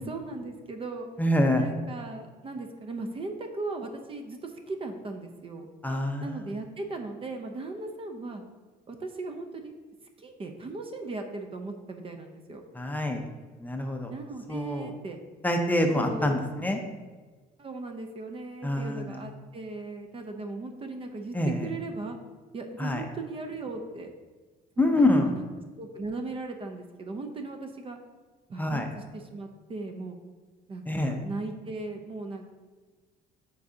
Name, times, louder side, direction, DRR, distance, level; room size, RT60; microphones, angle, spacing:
voice 1, 0.0-1.1 1.5-5.7 6.2-8.4 8.9-9.7 10.2-12.6 14.1-15.2 15.9-16.4 17.6-22.2 22.5-24.1 24.8-25.5 25.8-28.0 28.5-30.2 30.7-32.5, right 3 dB, 35° right, 5 dB, 0.6 m, -37 dB
voice 2, 1.2-1.7 5.8-6.4 12.7-13.2 13.6-14.1 14.5-14.9 15.4-16.8 18.6-19.2 21.3-21.6 22.8-23.0 24.8-25.3 28.6-28.9 30.9-31.2, left 1 dB, 10° left, 3 dB, 0.6 m, -26 dB
7.3 x 4.7 x 2.7 m, 1.3 s
cardioid pair, 110°, 17 cm